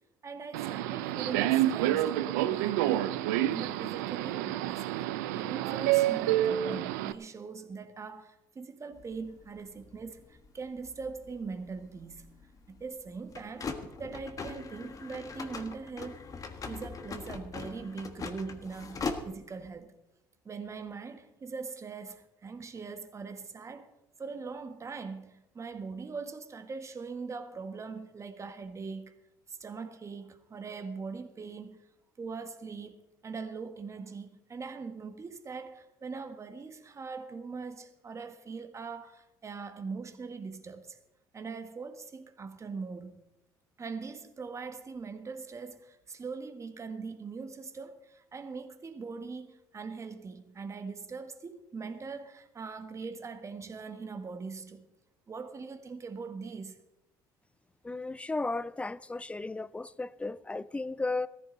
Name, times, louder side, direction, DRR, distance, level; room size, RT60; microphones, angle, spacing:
voice 1, 0.2-3.2 3.5-4.9 5.3-12.4 12.7-13.7 14.0-16.2 16.7-20.0 20.4-23.9 24.2-29.2 29.5-31.8 32.2-41.0 41.3-43.2 43.8-54.9 55.3-56.8, right 4 dB, 30° right, 1.6 m, -41 dB
Subway metro underground, 0.5-7.1, right 13 dB, 90° right, 0.5 m, -28 dB
sound 1, 8.9-19.7, left 4 dB, 40° left, 1.6 m, -42 dB
voice 2, 57.8-61.3, left 3 dB, 15° left, 0.6 m, -34 dB
16.0 x 14.5 x 4.0 m
supercardioid pair, 75°, 9 cm